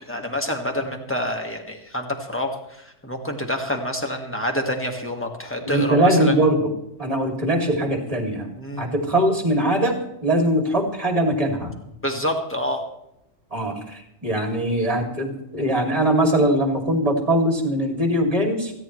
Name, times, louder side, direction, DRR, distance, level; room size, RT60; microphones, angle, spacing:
voice 1, 0.1-6.3 8.6-8.8 12.0-12.8, left 1 dB, 10° left, 3 dB, 1.7 m, -27 dB
voice 2, 5.6-6.7 7.0-8.5 8.8-11.7 13.5-18.7, right 1 dB, 30° right, 2 dB, 2.7 m, -21 dB
28.0 x 10.0 x 3.2 m, 0.81 s
omnidirectional pair, 1.3 m